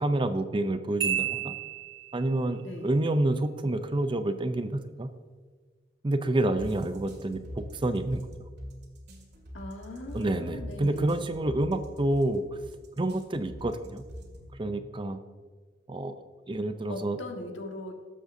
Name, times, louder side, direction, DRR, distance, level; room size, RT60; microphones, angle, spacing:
voice 1, 0.0-1.6 2.1-5.1 6.0-8.2 10.1-12.4 13.0-14.0 14.6-15.2 15.9-16.2 16.5-17.2, right 1 dB, 25° right, 9 dB, 0.5 m, -28 dB
Marimba xylophone, 1.0-2.4, right 10 dB, 80° right, 1.5 m, -31 dB
sound 1, 6.6-14.6, equal, 60° right, 2.1 m, -43 dB
voice 2, 9.5-11.3 16.9-17.9, left 2 dB, 75° left, 2 dB, 1.5 m, -40 dB
19.0 x 7.5 x 2.7 m, 1.5 s
head